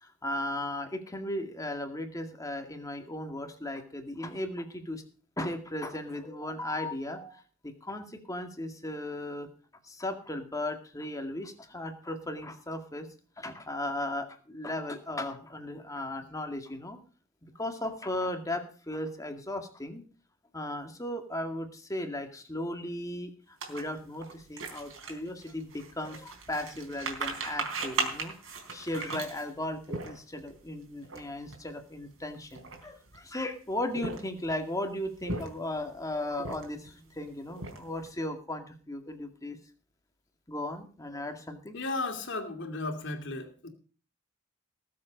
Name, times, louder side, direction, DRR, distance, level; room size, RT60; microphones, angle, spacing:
voice 1, 0.0-5.0 5.4-9.5 9.8-13.1 13.4-17.0 17.6-20.0 20.5-23.3 23.7-39.6 40.5-41.8, left 1 dB, 15° left, 5 dB, 2.1 m, -36 dB
sound 1, 23.6-30.5 31.0-31.2 31.5-31.7 32.3-33.2 33.8-34.5 35.0-35.8 36.3-36.9 37.3-38.1, right 3 dB, 70° right, 4.0 m, -37 dB
voice 2, 41.7-43.7, left 2 dB, 60° left, 5 dB, 2.7 m, -34 dB
19.0 x 7.7 x 5.2 m, 0.39 s
head